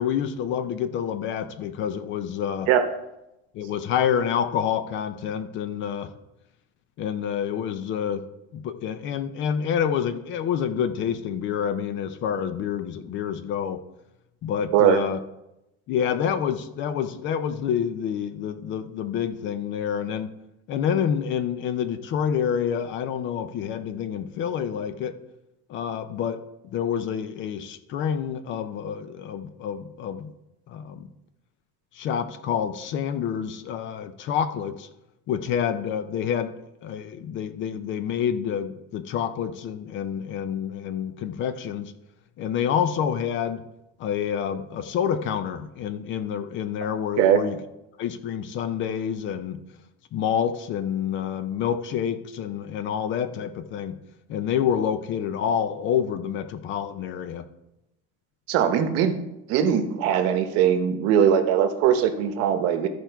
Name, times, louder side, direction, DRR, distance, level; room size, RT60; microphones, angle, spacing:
voice 1, 0.0-2.7 3.5-6.1 7.0-8.2 8.5-13.8 14.4-15.2 15.9-20.3 20.7-25.2 25.7-26.4 26.7-30.3 30.7-31.1 31.9-34.9 35.3-36.5 36.8-41.9 42.4-43.6 44.0-47.6 48.0-49.6 50.1-53.9 54.3-57.4, left 8 dB, 40° left, 11 dB, 0.6 m, -28 dB
voice 2, 58.5-59.1 59.5-62.9, right 9 dB, 50° right, 8 dB, 1.0 m, -20 dB
13.5 x 4.5 x 4.6 m, 0.91 s
supercardioid pair, 145°, 31 cm